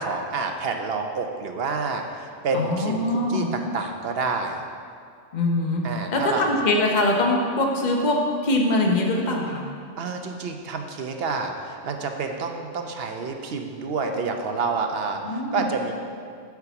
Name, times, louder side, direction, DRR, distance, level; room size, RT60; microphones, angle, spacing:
voice 1, 0.0-4.6 5.8-6.5 10.0-15.9, right 4 dB, 60° right, 4 dB, 0.9 m, -28 dB
voice 2, 2.5-3.5 5.3-5.8 6.1-9.6 15.2-15.7, left 2 dB, 40° left, 1 dB, 1.0 m, -23 dB
8.2 x 4.7 x 6.9 m, 2.2 s
omnidirectional pair, 1.2 m